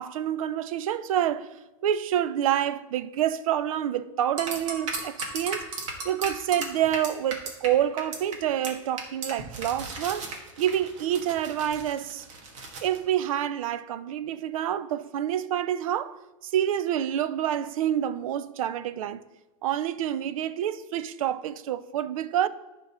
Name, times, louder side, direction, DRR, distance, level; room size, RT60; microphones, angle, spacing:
voice 1, 0.0-1.5 1.8-5.7 6.0-10.3 10.6-12.2 12.8-16.2 16.4-19.2 19.6-22.5, right 10 dB, 85° right, 0.5 m, -27 dB
sound 1, 4.4-7.7 8.0-8.3 8.6-8.7 9.0-13.0, right 3 dB, 65° right, 1.9 m, -35 dB
14.5 x 5.2 x 3.0 m
supercardioid pair, 155°, 17 cm